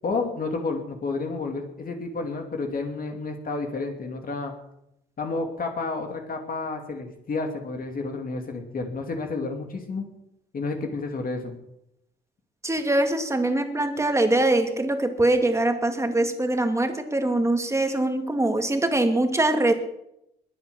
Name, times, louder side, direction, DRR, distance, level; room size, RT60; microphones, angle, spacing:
voice 1, 0.0-4.5 5.2-10.1 10.5-11.5, left 3 dB, 45° left, 3 dB, 2.8 m, -30 dB
voice 2, 12.6-19.7, right 2 dB, 15° right, 6 dB, 2.5 m, -23 dB
21.5 x 7.7 x 7.1 m, 0.82 s
cardioid pair, 90°, 20 cm